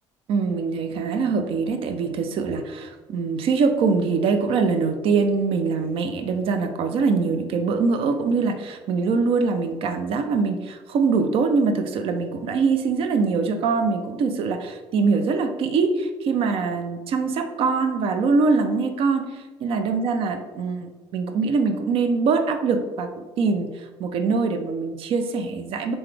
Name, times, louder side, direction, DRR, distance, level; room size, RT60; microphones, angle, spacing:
voice 1, 0.3-26.0, right 4 dB, 60° right, 7 dB, 0.5 m, -23 dB
3.9 x 3.8 x 3.3 m, 1.3 s
cardioid pair, 120°, 10 cm